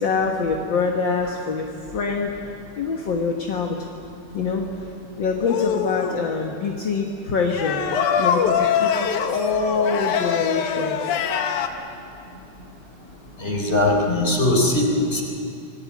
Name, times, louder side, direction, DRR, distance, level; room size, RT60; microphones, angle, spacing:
voice 1, 0.0-2.4 2.8-3.9 4.3-4.6 5.2-7.9 8.2-11.2, left 4 dB, 50° left, 1 dB, 1.7 m, -25 dB
sound 1, 5.4-6.2 7.5-11.7, left 7 dB, 80° left, 2.7 m, -23 dB
voice 2, 13.4-15.2, left 1 dB, 20° left, 1 dB, 3.8 m, -20 dB
26.5 x 19.0 x 8.6 m, 2.5 s
omnidirectional pair, 3.5 m